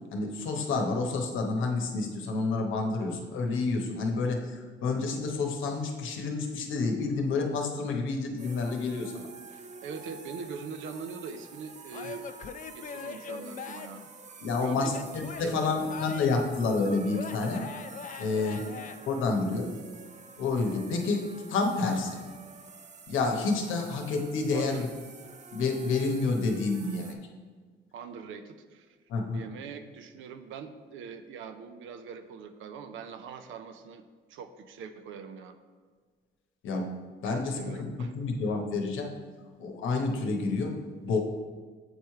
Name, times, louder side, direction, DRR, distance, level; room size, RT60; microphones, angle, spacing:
voice 1, 0.1-9.3 14.4-14.9 15.4-17.6 18.2-18.6 19.0-19.7 20.4-22.2 23.1-24.9 25.5-27.2 29.1-29.4 36.6-36.9 37.2-39.1 39.6-40.8 41.0-41.2, left 3 dB, 80° left, 3 dB, 0.9 m, -29 dB
sound 1, 8.4-27.1, right 4 dB, 35° right, 0.5 m, -48 dB
voice 2, 9.5-12.3 12.7-14.0 14.6-15.0 15.4-15.9 18.3-18.9 24.5-24.9 27.9-29.0 29.3-34.0 34.3-35.6 37.2-38.1, right 6 dB, 85° right, 9 dB, 0.5 m, -42 dB
Male speech man speaking / Yell / Laughter, 11.9-14.1 14.7-16.5 17.1-19.0, left 6 dB, 40° left, 0.4 m, -41 dB
8.0 x 3.2 x 4.6 m, 1.5 s
cardioid pair, 90°, 20 cm